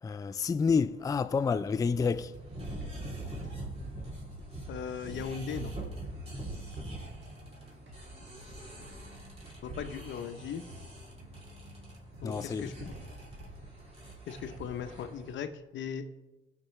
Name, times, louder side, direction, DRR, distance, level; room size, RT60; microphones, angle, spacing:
voice 1, 0.0-2.3 12.2-12.9, left 5 dB, 20° left, 0.3 m, -29 dB
sound 1, 0.8-15.4, right 2 dB, 30° right, 3.1 m, -44 dB
sound 2, 1.8-13.4, equal, 65° right, 2.4 m, -52 dB
voice 2, 4.7-5.8 9.6-10.6 12.2-12.7 14.3-16.0, left 7 dB, 70° left, 0.8 m, -38 dB
17.0 x 5.9 x 3.3 m
cardioid pair, 90°, 20 cm